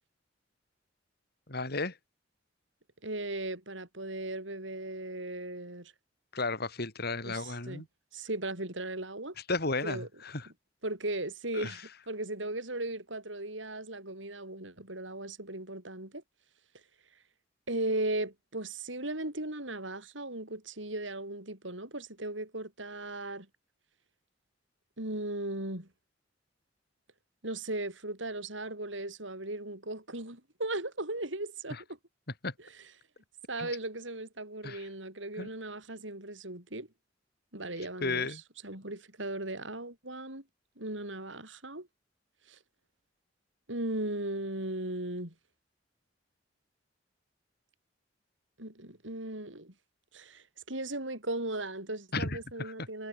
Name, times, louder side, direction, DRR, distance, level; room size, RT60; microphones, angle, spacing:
voice 1, 1.5-1.9 6.3-7.9 9.5-10.4 11.5-11.7 32.4-32.5 33.6-33.7 34.6-34.8 35.4-35.5 38.0-38.4 52.1-52.7, left 3 dB, 55° left, 4.2 m, -33 dB
voice 2, 3.0-5.9 7.2-7.8 8.1-9.4 9.8-10.1 10.8-16.2 17.7-23.5 25.0-25.9 27.4-32.0 32.6-32.9 33.5-36.9 37.5-40.4 40.8-41.9 42.5-42.6 43.7-45.3 48.6-49.7 50.1-53.1, right 2 dB, 80° right, 7.8 m, -37 dB
head